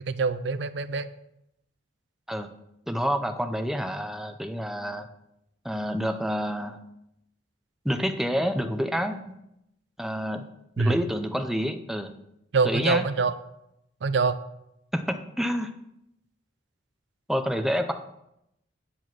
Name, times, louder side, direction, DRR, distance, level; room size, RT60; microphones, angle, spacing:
voice 1, 0.0-1.1 10.8-11.0 12.5-13.3 14.0-14.4, right 4 dB, 65° right, 12 dB, 0.5 m, -24 dB
voice 2, 2.9-5.1 5.6-6.8 7.8-9.2 10.0-10.4 10.8-12.1 12.6-13.0 14.9-15.7 17.3-17.9, equal, ahead, 7 dB, 0.5 m, -28 dB
9.9 x 4.9 x 6.0 m, 0.82 s
head